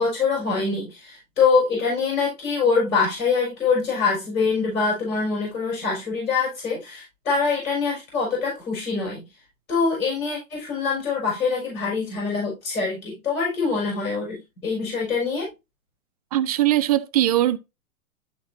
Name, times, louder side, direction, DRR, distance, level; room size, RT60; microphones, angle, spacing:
voice 1, 0.0-9.3 9.7-15.5, left 4 dB, 80° left, 5.0 m, -24 dB
voice 2, 16.3-17.6, right 13 dB, 30° right, 0.3 m, -20 dB
12.0 x 4.0 x 2.7 m
hypercardioid pair, 125°, 42 cm